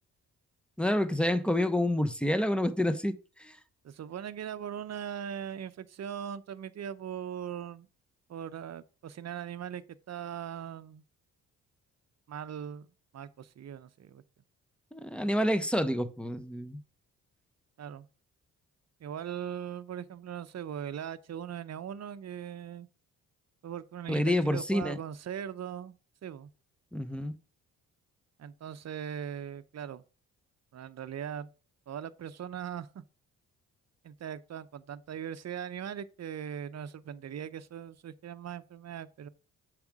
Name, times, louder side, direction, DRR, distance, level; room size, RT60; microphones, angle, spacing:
voice 1, 0.8-3.6 14.9-16.8 24.1-25.0 26.9-27.3, left 1 dB, 5° left, 0.9 m, -28 dB
voice 2, 3.8-7.9 8.3-11.0 12.3-12.9 13.1-14.2 17.8-18.1 19.0-22.9 23.6-26.0 26.2-26.5 28.4-30.0 30.7-31.5 31.9-33.0 34.0-39.3, right 9 dB, 50° right, 0.7 m, -40 dB
7.0 x 5.0 x 4.7 m
supercardioid pair, 55°, 35 cm